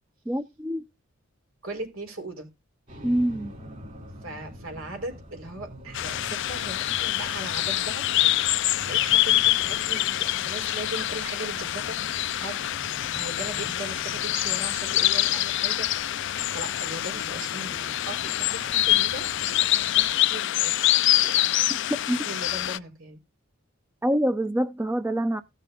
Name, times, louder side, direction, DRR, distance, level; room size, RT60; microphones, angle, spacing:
voice 1, 0.3-0.8 3.0-3.5 22.1-22.2 24.0-25.4, right 1 dB, 10° right, 0.5 m, -25 dB
voice 2, 1.6-2.5 4.2-12.7 13.1-15.9 16.2-20.8 21.2-21.4 21.7-23.2, right 2 dB, 85° right, 4.3 m, -39 dB
sound 1, 2.9-20.1, equal, 40° right, 3.2 m, -45 dB
sound 2, 5.9-22.8, left 14 dB, 60° left, 0.4 m, -25 dB
16.0 x 6.6 x 2.5 m
head